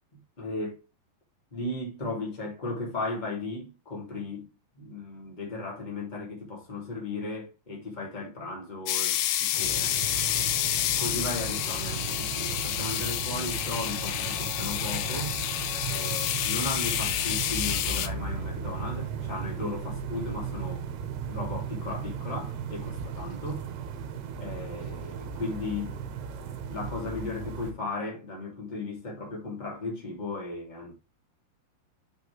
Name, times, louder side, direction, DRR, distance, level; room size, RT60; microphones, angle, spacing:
voice 1, 0.4-0.8 1.5-4.5 4.8-9.9 10.3-10.4 11.0-15.4 15.9-20.8 21.3-23.7 24.3-26.0 26.7-30.9, left 2 dB, 15° left, 2.2 m, -36 dB
sound 1, 8.9-18.1, left 12 dB, 80° left, 2.6 m, -29 dB
sound 2, 9.5-27.7, right 6 dB, 75° right, 3.1 m, -36 dB
8.8 x 5.2 x 3.4 m
omnidirectional pair, 4.9 m